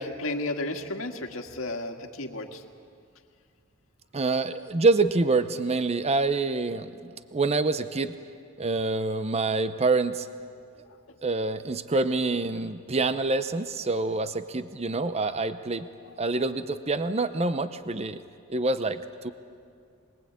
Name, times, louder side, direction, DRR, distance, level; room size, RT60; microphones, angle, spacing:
voice 1, 0.0-2.6 10.9-11.0 16.1-16.2, left 2 dB, 80° left, 4 dB, 1.8 m, -33 dB
voice 2, 4.1-8.2 8.6-10.3 11.2-15.9 16.2-18.2 18.5-19.3, right 3 dB, 30° right, 11 dB, 0.7 m, -26 dB
22.5 x 21.5 x 8.6 m, 2.3 s
head